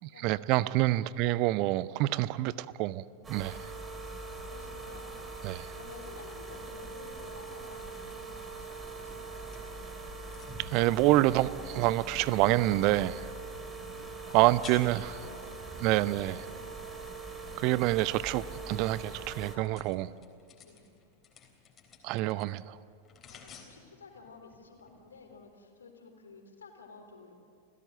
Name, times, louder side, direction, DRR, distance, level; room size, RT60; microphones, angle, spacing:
voice 1, 0.2-2.5 2.8-3.6 5.4-5.7 10.6-13.3 14.3-15.1 15.8-16.4 17.6-20.1 22.0-22.8, right 17 dB, 40° right, 0.6 m, -27 dB
sound 1, 3.2-19.6, right 3 dB, 15° right, 3.1 m, -42 dB
voice 2, 4.2-5.1 5.7-9.4 13.7-14.0 14.3-14.6 15.1-16.0 16.6-16.9 20.6-21.0 23.3-27.4, left 4 dB, 70° left, 3.8 m, -53 dB
sound 2, 9.0-25.4, left 6 dB, 25° left, 3.7 m, -56 dB
29.5 x 16.5 x 8.0 m
figure-of-eight pair, 90°, 0 cm